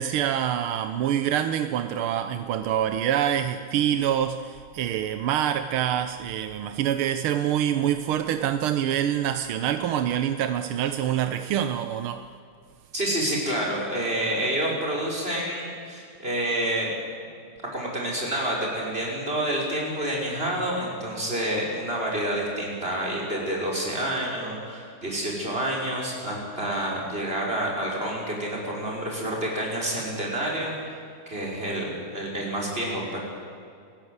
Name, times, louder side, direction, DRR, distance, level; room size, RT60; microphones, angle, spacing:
voice 1, 0.0-12.2, right 10 dB, 85° right, 9 dB, 1.7 m, -26 dB
voice 2, 12.9-16.9 17.7-31.0 31.3-33.2, right 1 dB, 25° right, -2 dB, 6.0 m, -28 dB
29.0 x 16.5 x 8.1 m, 2.4 s
omnidirectional pair, 2.3 m